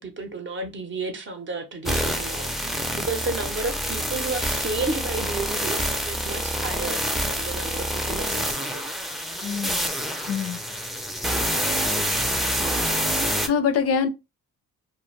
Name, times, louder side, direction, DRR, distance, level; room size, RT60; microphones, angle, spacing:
voice 1, 0.0-8.8, right 3 dB, 40° right, 0.6 m, -32 dB
sound 1, 1.9-13.5, equal, ahead, 0.4 m, -27 dB
voice 2, 9.4-9.8 10.3-10.6 13.4-14.1, left 6 dB, 50° left, 0.5 m, -24 dB
2.5 x 2.2 x 3.1 m
cardioid pair, 90°, 30 cm